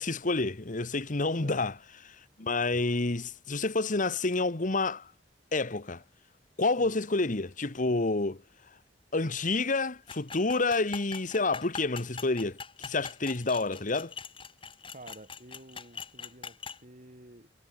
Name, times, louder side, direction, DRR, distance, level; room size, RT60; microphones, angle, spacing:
voice 1, 0.0-1.7 2.4-5.1 5.5-6.0 6.6-8.4 9.1-14.1, left 3 dB, 45° left, 1.3 m, -29 dB
sound 1, 10.1-16.8, left 5 dB, 30° left, 3.5 m, -43 dB
voice 2, 14.9-17.5, right 1 dB, 45° right, 6.5 m, -50 dB
head